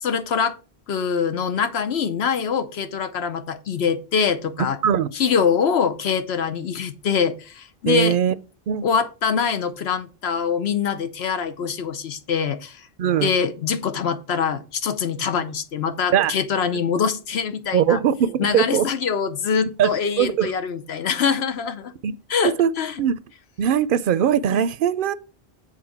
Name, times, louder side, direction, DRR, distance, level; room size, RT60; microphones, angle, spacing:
voice 1, 0.0-0.6 0.9-4.8 5.1-8.2 8.8-12.9 13.2-18.0 18.4-21.9 22.3-22.9, left 6 dB, 90° left, 1.1 m, -24 dB
voice 2, 7.9-8.3 8.7-8.8 13.0-13.3 16.1-16.3 16.7-16.8 17.7-18.9 19.8-19.9 20.2-20.5 22.0-22.2 22.4-22.7 23.0-23.2 23.6-25.1, right 9 dB, 65° right, 0.7 m, -20 dB
7.6 x 4.1 x 5.9 m
omnidirectional pair, 1.0 m